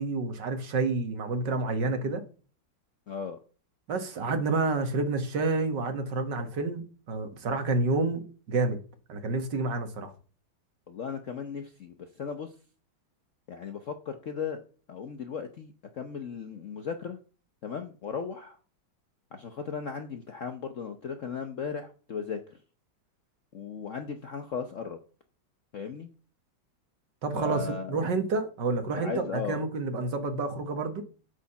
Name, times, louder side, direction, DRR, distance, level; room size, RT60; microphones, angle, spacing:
voice 1, 0.0-2.2 3.9-8.8 9.1-10.1 27.2-31.0, right 3 dB, 60° right, 2.1 m, -29 dB
voice 2, 3.1-3.4 10.9-12.5 13.5-14.6 14.9-17.2 17.6-18.6 19.3-22.6 23.5-25.0 25.7-26.1 27.4-28.1 29.0-29.6, left 6 dB, 55° left, 0.9 m, -36 dB
8.2 x 6.5 x 5.8 m
omnidirectional pair, 2.2 m